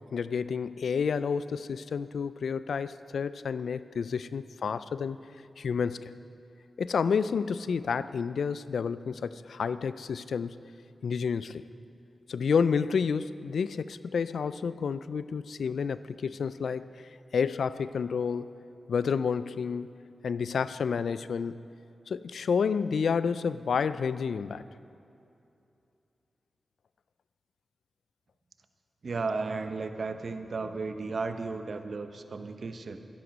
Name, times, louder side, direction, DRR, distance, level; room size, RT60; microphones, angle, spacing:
voice 1, 0.1-5.2 5.6-6.1 6.8-10.6 11.0-11.7 12.3-18.6 18.9-21.6 22.1-24.7, left 6 dB, 85° left, 15 dB, 0.3 m, -30 dB
voice 2, 29.0-33.0, right 4 dB, 65° right, 8 dB, 0.8 m, -34 dB
12.5 x 11.5 x 5.2 m, 2.7 s
cardioid pair, 45°, 0 cm